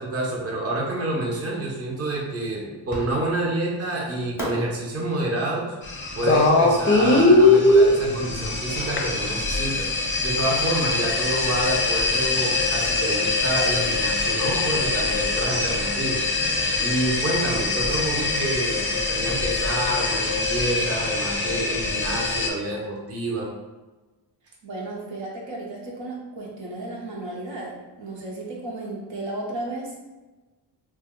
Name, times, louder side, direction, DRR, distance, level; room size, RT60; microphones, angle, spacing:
voice 1, 0.0-5.6 6.1-9.9 10.2-16.2 16.8-23.5, right 1 dB, 30° right, -3 dB, 0.8 m, -28 dB
Fireworks, 2.9-3.6 4.4-7.5, equal, 5° right, 0.9 m, -38 dB
sound 1, 5.8-22.5, left 2 dB, 25° left, 0.5 m, -22 dB
voice 2, 24.6-30.0, right 2 dB, 70° right, -3 dB, 0.9 m, -34 dB
2.6 x 2.1 x 3.6 m, 1.2 s
cardioid pair, 75°, 48 cm